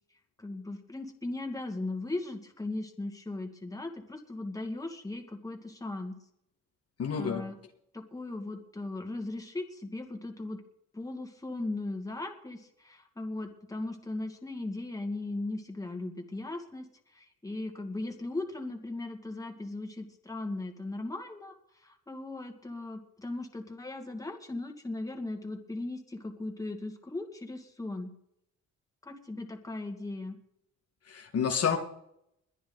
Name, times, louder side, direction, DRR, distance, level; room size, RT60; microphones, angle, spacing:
voice 1, 0.4-6.2 7.2-7.5 7.9-10.6 10.9-28.1 29.0-30.4, left 2 dB, 10° left, 3 dB, 2.2 m, -38 dB
voice 2, 7.0-7.4 31.1-31.8, left 7 dB, 55° left, 3 dB, 1.8 m, -29 dB
21.5 x 10.0 x 4.0 m, 0.75 s
cardioid pair, 90°, 30 cm